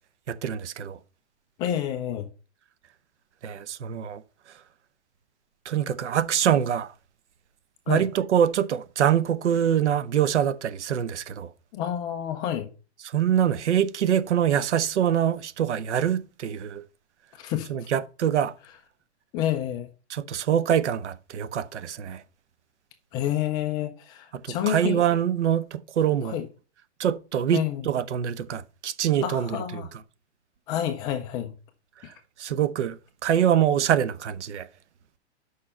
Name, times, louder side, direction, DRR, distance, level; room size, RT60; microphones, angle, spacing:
voice 1, 0.3-1.0 3.4-4.2 5.6-6.9 7.9-11.5 13.1-16.8 17.7-18.5 20.1-22.2 24.4-26.4 27.0-29.8 32.4-33.0 33.2-34.7, right 9 dB, 85° right, 0.9 m, -24 dB
voice 2, 1.6-2.3 7.9-8.1 11.7-12.7 17.3-17.7 19.3-19.9 23.1-25.0 26.2-26.4 27.5-27.8 29.2-29.9 30.7-31.5, left 11 dB, 15° left, 0.3 m, -28 dB
6.5 x 5.5 x 5.3 m
hypercardioid pair, 145°, 34 cm